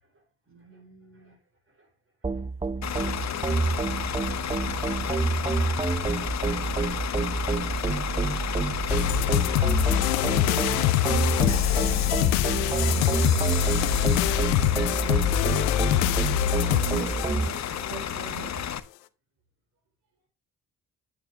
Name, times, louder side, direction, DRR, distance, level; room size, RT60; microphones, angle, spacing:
voice 1, 0.0-1.4 1.7-1.9 2.2-4.6 10.1-10.9, right 1 dB, 35° right, 4 dB, 4.3 m, -46 dB
sound 1, 2.2-17.5, right 3 dB, 15° right, 0.5 m, -28 dB
Bus / Idling, 2.8-18.8, left 9 dB, 45° left, 0.8 m, -32 dB
sound 2, 8.9-18.0, left 13 dB, 90° left, 0.5 m, -25 dB
voice 2, 12.5-14.8 16.6-18.7, right 4 dB, 80° right, 3 dB, 1.8 m, -42 dB
8.9 x 8.7 x 2.4 m, 0.27 s
hypercardioid pair, 45°, 39 cm